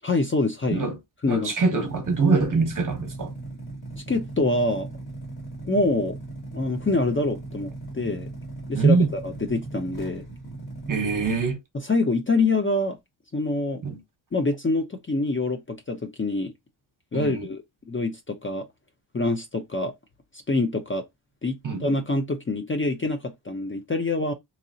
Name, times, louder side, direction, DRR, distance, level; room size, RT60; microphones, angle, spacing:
voice 1, 0.0-0.8 1.2-1.8 4.1-4.9 5.7-6.2 6.5-8.3 8.7-9.0 9.2-10.3 11.9-13.0 13.3-13.8 14.3-16.5 17.1-17.6 17.9-18.7 19.1-19.9 20.5-21.1 21.4-24.3, left 2 dB, 25° left, 0.6 m, -25 dB
voice 2, 1.3-3.3 8.7-9.1 10.9-11.6 13.8-14.0 17.1-17.5 21.6-21.9, right 4 dB, 40° right, 1.0 m, -23 dB
sound 1, 1.7-11.5, right 2 dB, 50° left, 1.9 m, -38 dB
2.9 x 2.8 x 2.7 m
cardioid pair, 75°, 47 cm